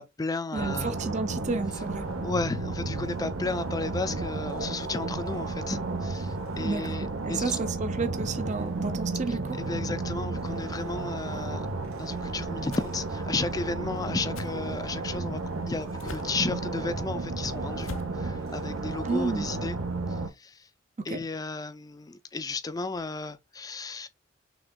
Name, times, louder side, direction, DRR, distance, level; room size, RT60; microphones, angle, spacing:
voice 1, 0.0-0.9 2.2-7.6 9.3-11.7 12.0-15.4 15.7-17.9 18.1-19.8 20.1-20.7 21.0-24.1, left 3 dB, 20° left, 0.4 m, -34 dB
voice 2, 0.5-2.1 6.6-9.6 19.0-19.5 21.0-21.2, right 3 dB, 35° right, 0.5 m, -31 dB
sound 1, 0.5-20.3, right 3 dB, 90° right, 1.0 m, -33 dB
sound 2, 12.7-12.9 14.3-14.5 16.0-16.4 17.8-18.2, left 3 dB, 75° left, 0.6 m, -41 dB
6.1 x 3.4 x 2.2 m
head